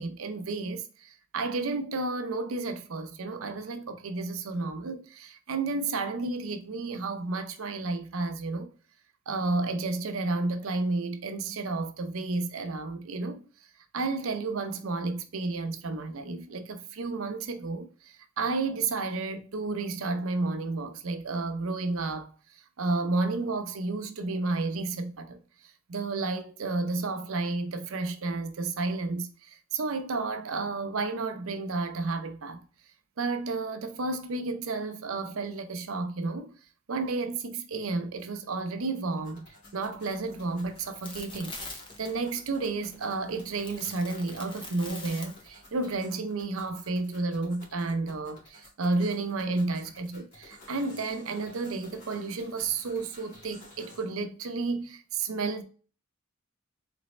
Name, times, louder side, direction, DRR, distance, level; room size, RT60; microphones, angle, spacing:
voice 1, 0.0-8.7 9.3-13.5 13.9-22.3 22.8-25.4 25.9-32.6 33.2-36.5 36.9-55.6, right 3 dB, 80° right, 0.6 m, -31 dB
sound 1, 39.1-54.1, left 2 dB, 50° left, 2.0 m, -53 dB
sound 2, 40.1-45.9, left 2 dB, 25° left, 0.6 m, -45 dB
4.1 x 3.3 x 3.1 m
head